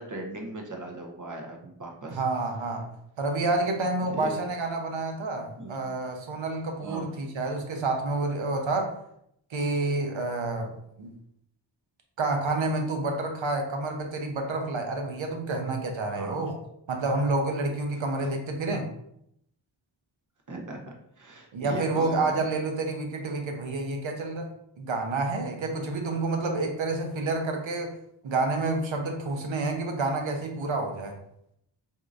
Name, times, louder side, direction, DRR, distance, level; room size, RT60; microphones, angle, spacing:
voice 1, 0.0-2.2 4.1-4.3 5.6-5.8 6.8-7.1 16.1-16.5 20.5-20.8 21.2-22.4, right 2 dB, 40° right, 0 dB, 0.8 m, -38 dB
voice 2, 2.1-2.9 3.2-8.9 9.5-10.7 11.0-11.1 12.2-16.6 16.9-18.9 21.5-24.5 24.8-27.9 28.2-31.1, right 2 dB, 75° right, 3 dB, 0.8 m, -29 dB
4.4 x 2.7 x 2.5 m, 0.73 s
cardioid pair, 60°, 47 cm